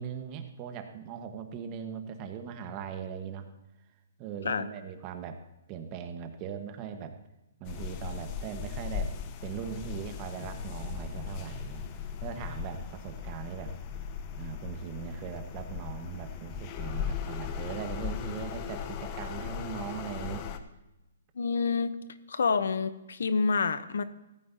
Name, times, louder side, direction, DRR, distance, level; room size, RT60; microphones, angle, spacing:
voice 1, 0.0-3.5 4.2-5.4 5.7-7.2 7.6-9.1 9.4-11.8 12.2-13.7 14.4-20.5, right 7 dB, 30° right, 6 dB, 1.4 m, -39 dB
sound 1, 7.6-20.6, left 7 dB, 35° left, 0.9 m, -38 dB
voice 2, 21.4-22.0 22.3-24.0, left 5 dB, 80° left, 13 dB, 0.8 m, -28 dB
15.5 x 13.5 x 2.9 m, 0.95 s
hypercardioid pair, 145°, 0 cm